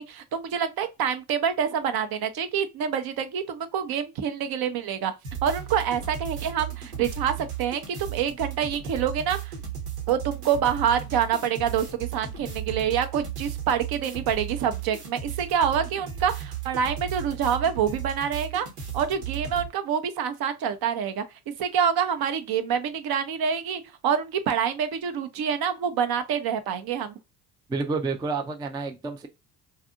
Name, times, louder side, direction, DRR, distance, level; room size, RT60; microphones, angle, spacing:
voice 1, 0.0-5.1 5.4-9.5 10.1-18.7 18.9-27.2, right 8 dB, 50° right, 0.6 m, -27 dB
sound 1, 5.2-19.7, right 9 dB, 85° right, 1.1 m, -35 dB
voice 2, 27.7-29.3, right 4 dB, 10° right, 0.3 m, -29 dB
2.6 x 2.4 x 2.4 m
hypercardioid pair, 55°, 47 cm